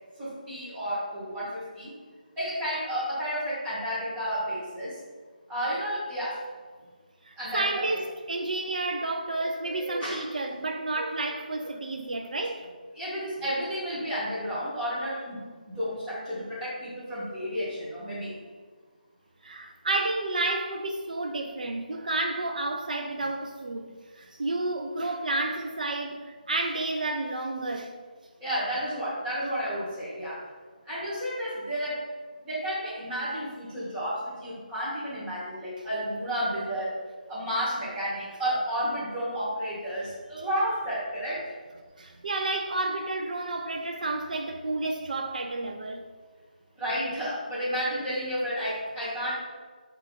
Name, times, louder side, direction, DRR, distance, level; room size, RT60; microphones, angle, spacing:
voice 1, 0.2-1.9 2.4-5.0 5.5-6.4 7.4-8.0 10.0-10.2 12.9-18.4 28.4-30.4 30.9-32.0 32.4-36.9 37.3-41.5 46.8-49.3, equal, 5° right, 0.7 m, -31 dB
voice 2, 7.3-12.7 19.4-28.0 42.0-46.0, right 2 dB, 60° right, 0.3 m, -31 dB
4.5 x 2.3 x 3.6 m
hypercardioid pair, 175°, 5 cm